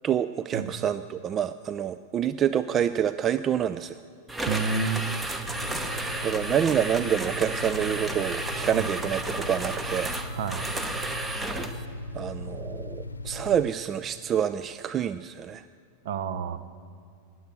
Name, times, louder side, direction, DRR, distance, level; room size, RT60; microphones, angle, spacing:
voice 1, 0.0-4.0 6.2-10.2 12.1-15.6, right 9 dB, 25° right, 13 dB, 0.3 m, -27 dB
sound 1, 4.3-11.9, right 2 dB, 10° right, 0.9 m, -33 dB
voice 2, 4.5-5.1 8.7-8.9 10.3-10.7 16.0-16.6, right 5 dB, 55° right, 13 dB, 0.8 m, -29 dB
sound 2, 5.4-13.7, left 2 dB, 75° left, 0.6 m, -38 dB
19.5 x 7.8 x 6.6 m, 2.4 s
figure-of-eight pair, 90°, 0 cm